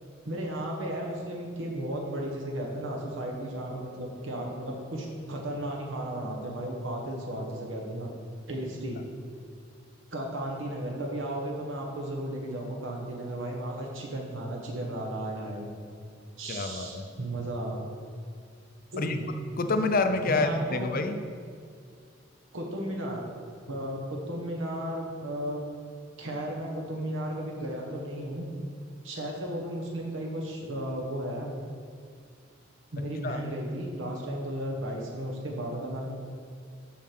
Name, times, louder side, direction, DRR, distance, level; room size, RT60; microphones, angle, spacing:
voice 1, 0.2-8.1 8.5-9.0 10.1-15.7 16.4-17.8 18.9-19.3 20.3-20.8 22.5-23.3 23.7-25.6 26.2-28.5 29.0-31.5 32.9-36.1, right 1 dB, 70° right, -1 dB, 1.2 m, -34 dB
voice 2, 16.5-17.0 19.0-19.2 19.6-21.2 33.2-33.4, left 3 dB, 45° left, 7 dB, 0.6 m, -27 dB
7.3 x 5.3 x 6.0 m, 2.2 s
head